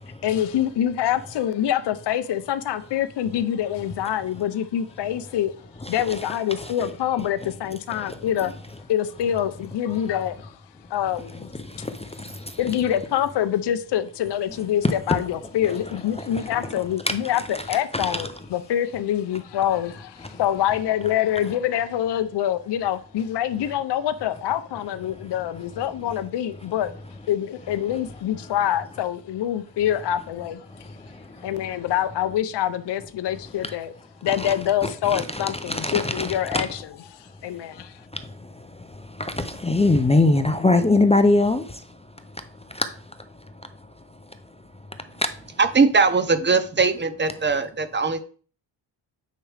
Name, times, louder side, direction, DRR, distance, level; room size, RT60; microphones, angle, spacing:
voice 1, 0.2-5.5 5.9-8.5 8.9-10.5 10.9-11.5 12.6-26.9 27.3-30.7 31.4-33.9 34.2-36.8 37.1-37.9, left 10 dB, 60° left, 0.6 m, -25 dB
voice 2, 5.8-6.7 7.9-8.2 11.3-12.6 14.8-15.2 15.7-15.8 16.1-17.7 17.9-18.2 20.2-20.4 25.1-25.3 28.4-28.5 30.7-31.9 33.6-33.7 34.2-34.5 34.8-36.7 37.4-44.6 44.9-45.6, left 2 dB, 15° left, 0.4 m, -26 dB
voice 3, 45.6-48.2, right 4 dB, 25° right, 0.6 m, -20 dB
9.1 x 4.9 x 3.3 m
wide cardioid pair, 125°, 46 cm